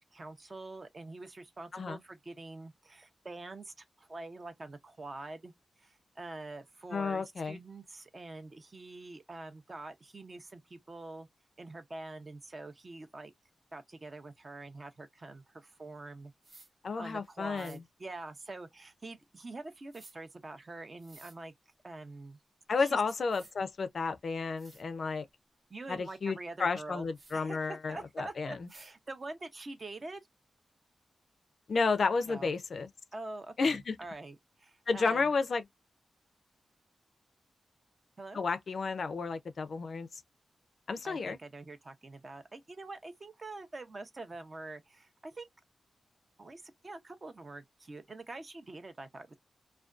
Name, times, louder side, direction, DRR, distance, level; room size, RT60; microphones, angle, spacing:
voice 1, 0.0-5.5 5.8-11.3 11.6-13.3 13.7-16.3 17.0-21.5 21.8-22.4 22.8-23.0 25.7-27.1 27.3-30.2 32.3-32.5 33.1-35.3 38.2-38.5 41.0-45.5 46.4-49.4, right 2 dB, 35° right, 0.5 m, -45 dB
voice 2, 6.9-7.6 16.8-17.8 22.7-25.3 25.9-28.7 31.7-32.9 33.6-34.0 34.9-35.6 38.3-40.1 40.9-41.4, left 4 dB, 55° left, 0.3 m, -32 dB
sound 1, 16.4-16.7 17.5-17.8 19.9-20.1 21.0-21.4 22.8-22.9 23.3-23.5 24.2-24.3 24.6-24.8 27.1-27.4 28.7-28.9, right 3 dB, 50° right, 0.9 m, -56 dB
2.4 x 2.2 x 2.3 m
wide cardioid pair, 125°, 0 cm